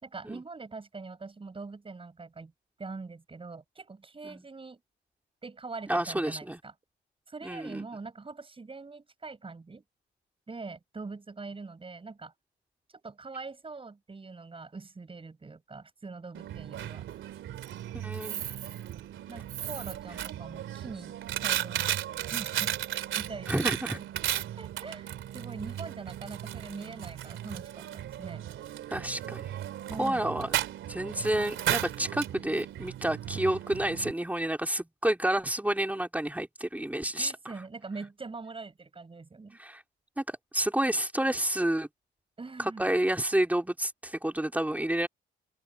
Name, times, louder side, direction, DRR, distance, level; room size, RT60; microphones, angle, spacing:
voice 1, 0.0-2.5 2.8-4.8 5.4-6.7 7.3-9.8 10.5-12.3 12.9-17.3 19.3-22.0 22.3-22.8 23.1-23.6 23.9-24.0 24.3-28.5 29.9-30.3 37.2-39.6 42.4-42.8, right 4 dB, 25° right, 6.6 m, -43 dB
voice 2, 5.9-6.6 7.4-7.8 17.9-18.6 23.5-24.0 28.9-29.5 30.0-30.5 30.9-37.5 39.5-39.8 40.2-41.9 42.6-45.1, right 1 dB, 10° right, 3.0 m, -30 dB
Coin (dropping), 16.3-34.1, right 12 dB, 80° right, 3.1 m, -35 dB
open air
cardioid pair, 90°, 20 cm